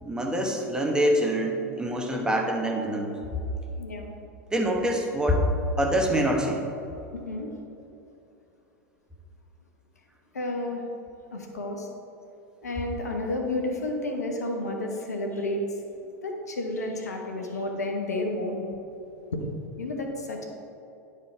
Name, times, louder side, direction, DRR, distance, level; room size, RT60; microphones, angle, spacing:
voice 1, 0.0-3.1 4.5-5.4 5.8-6.6, equal, 10° right, 1 dB, 1.2 m, -25 dB
voice 2, 2.0-2.3 3.8-4.1 7.1-7.5 10.3-10.8 11.3-11.9 12.6-15.6 16.2-18.7 19.3-19.4 19.8-20.4, left 2 dB, 85° left, 2 dB, 1.1 m, -31 dB
11.0 x 4.8 x 4.5 m, 2.8 s
hypercardioid pair, 90°, 9 cm